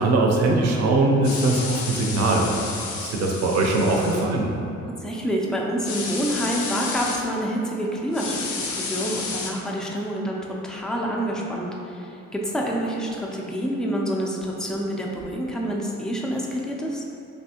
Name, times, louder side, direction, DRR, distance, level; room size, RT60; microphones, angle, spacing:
voice 1, 0.0-2.6 2.9-4.5, right 2 dB, 60° right, 0 dB, 0.6 m, -21 dB
sound 1, 1.2-4.3 5.8-7.2 8.1-9.5, left 4 dB, 70° left, 0.5 m, -31 dB
voice 2, 5.0-17.0, equal, ahead, -2 dB, 0.3 m, -27 dB
3.3 x 2.6 x 2.8 m, 2.7 s
cardioid pair, 90°, 30 cm